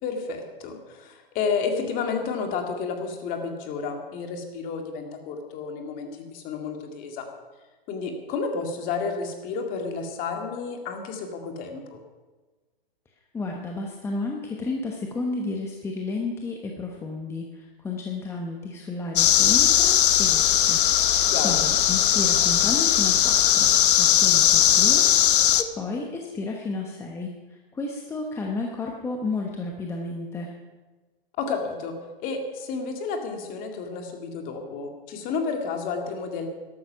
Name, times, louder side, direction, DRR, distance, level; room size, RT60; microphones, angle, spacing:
voice 1, 0.0-7.3 7.9-12.0 21.3-21.6 31.4-31.9 32.2-36.5, left 5 dB, 30° left, 4 dB, 2.1 m, -31 dB
voice 2, 13.3-30.5, left 3 dB, 10° left, 1 dB, 1.0 m, -32 dB
sound 1, 19.2-25.6, left 11 dB, 60° left, 0.9 m, -19 dB
13.0 x 12.5 x 5.7 m, 1.3 s
hypercardioid pair, 140°, 29 cm